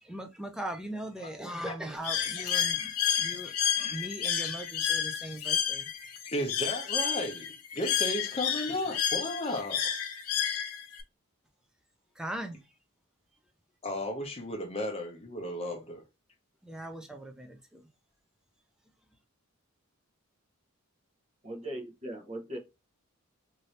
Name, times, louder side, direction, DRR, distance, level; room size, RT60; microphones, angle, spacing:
voice 1, 0.0-5.9 12.2-12.7 16.6-17.8, right 1 dB, 5° right, 0.4 m, -40 dB
Bird, 2.0-11.0, left 9 dB, 90° left, 0.6 m, -31 dB
voice 2, 6.3-9.9 13.8-16.0, left 1 dB, 30° left, 0.7 m, -34 dB
voice 3, 21.4-22.6, right 1 dB, 30° right, 0.8 m, -39 dB
2.7 x 2.7 x 3.1 m
head